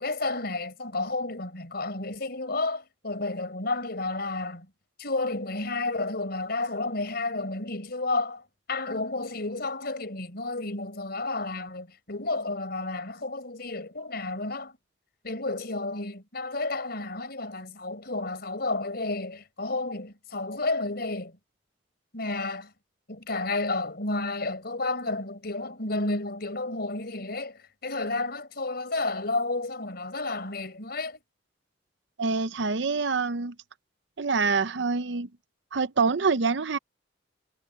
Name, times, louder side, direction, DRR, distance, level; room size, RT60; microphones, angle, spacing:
voice 1, 0.0-4.7 5.0-8.4 8.7-14.8 15.2-21.4 22.1-22.7 23.1-31.2, left 2 dB, 55° left, 4.7 m, -31 dB
voice 2, 32.2-33.5 34.2-35.3 35.7-36.8, right 4 dB, 70° right, 0.7 m, -26 dB
head